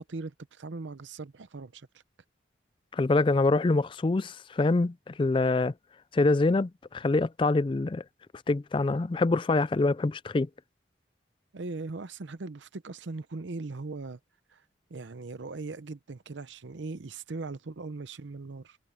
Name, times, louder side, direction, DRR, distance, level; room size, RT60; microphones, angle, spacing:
voice 1, 0.0-1.9 11.5-14.2 14.5-14.6 14.9-18.8, right 3 dB, 90° right, 0.7 m, -39 dB
voice 2, 2.9-5.7 6.1-8.0 8.5-10.5, left 3 dB, 25° left, 0.3 m, -25 dB
head